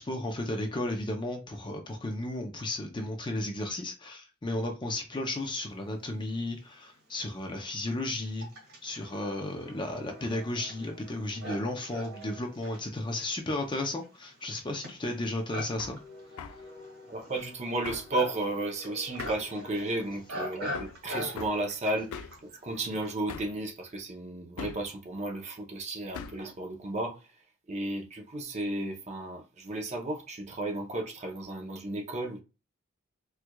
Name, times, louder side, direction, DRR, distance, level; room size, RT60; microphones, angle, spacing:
voice 1, 0.0-8.5 8.8-16.0, left 1 dB, 20° left, 0.5 m, -34 dB
Livestock farm animals working animals, 6.4-6.5 7.3-23.2, left 1 dB, 85° right, 1.6 m, -43 dB
Hammer, 15.8-16.0 16.4-16.6 17.8-18.1 19.2-19.5 20.7-21.0 21.4-21.6 22.1-22.4 23.3-23.6 24.6-24.9 26.1-26.5, left 6 dB, 85° left, 0.3 m, -41 dB
voice 2, 17.1-27.2 27.7-32.4, right 2 dB, 30° right, 0.6 m, -33 dB
4.4 x 2.3 x 2.3 m
head